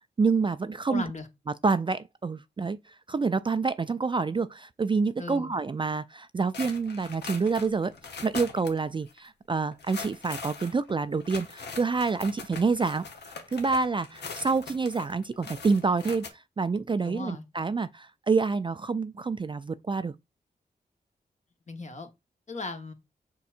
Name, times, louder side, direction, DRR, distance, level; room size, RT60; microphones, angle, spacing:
voice 1, 0.2-1.0 1.6-7.9 8.2-13.1 13.5-20.1, right 4 dB, 30° right, 0.3 m, -27 dB
voice 2, 0.9-1.3 5.2-5.5 17.0-17.4 21.7-22.1 22.5-22.9, left 3 dB, 40° left, 1.2 m, -37 dB
sound 1, 6.5-8.8 9.1-9.2 9.7-16.3, left 4 dB, 75° left, 0.9 m, -41 dB
4.5 x 4.2 x 2.5 m
cardioid pair, 50°, 17 cm